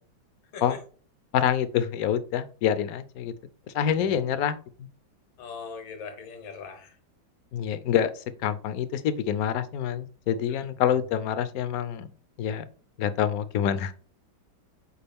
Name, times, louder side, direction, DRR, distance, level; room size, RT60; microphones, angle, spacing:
voice 1, 1.3-3.3 3.7-4.9 7.5-12.1 12.4-12.6 13.0-13.9, left 9 dB, 65° left, 13 dB, 0.9 m, -26 dB
voice 2, 5.4-7.0 10.5-10.7, left 5 dB, 85° left, 5 dB, 1.9 m, -40 dB
6.9 x 4.8 x 3.5 m, 0.41 s
omnidirectional pair, 2.1 m